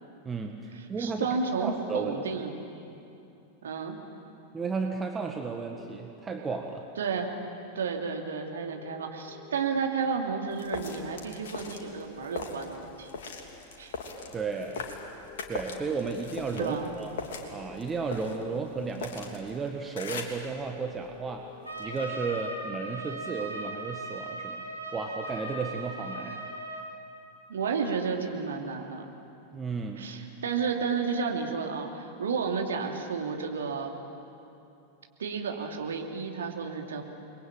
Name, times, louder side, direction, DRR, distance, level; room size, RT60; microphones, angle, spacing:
voice 1, 0.3-1.3 1.6-2.2 4.5-6.9 14.3-14.8 15.5-17.1 17.5-21.5 21.8-24.6 24.9-26.4 29.5-30.1, right 4 dB, 15° right, 3 dB, 1.7 m, -33 dB
voice 2, 1.0-2.6 3.6-4.0 7.0-7.3 7.7-13.1 13.8-13.9 16.6-16.9 27.5-29.1 30.0-33.9 35.2-37.0, right 5 dB, 65° right, 2 dB, 2.9 m, -32 dB
sound 1, 5.7-6.7 8.7-9.7 11.6-12.7 14.6-15.7 17.6-18.7 20.6-21.7, left 6 dB, 35° left, 3.1 m, -51 dB
sound 2, 10.5-20.5 21.0-22.0, left 4 dB, 60° left, 3.1 m, -41 dB
Trumpet, 21.6-26.9, right 1 dB, 85° right, 5.6 m, -38 dB
29.5 x 22.0 x 9.0 m, 2.7 s
figure-of-eight pair, 90°, 0 cm